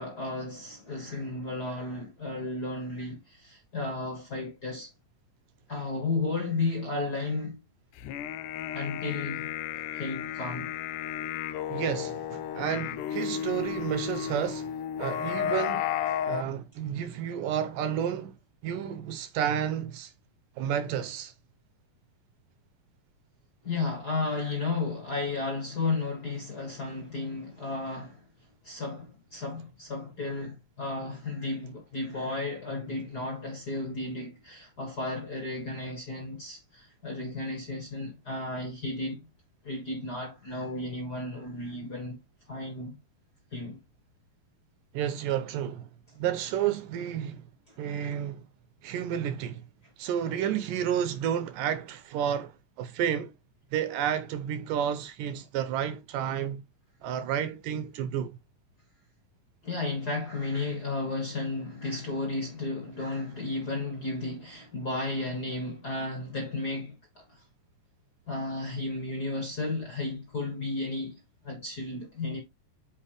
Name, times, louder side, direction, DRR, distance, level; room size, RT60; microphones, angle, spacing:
voice 1, 0.0-4.9 5.7-7.6 8.7-9.5 9.9-10.7 23.6-28.2 28.6-39.3 39.6-42.2 42.5-43.0 43.5-43.8 59.6-67.4 68.3-72.4, left 3 dB, 40° left, 1.5 m, -33 dB
sound 1, 8.0-16.4, left 10 dB, 80° left, 1.9 m, -33 dB
voice 2, 11.7-14.7 15.0-15.9 16.3-18.3 18.6-20.1 20.6-21.3 44.9-45.9 46.2-47.5 47.8-48.4 48.8-49.6 50.0-52.5 52.8-53.3 53.7-56.6 57.0-58.4, right 9 dB, 80° right, 2.2 m, -31 dB
8.7 x 5.0 x 3.3 m
omnidirectional pair, 4.1 m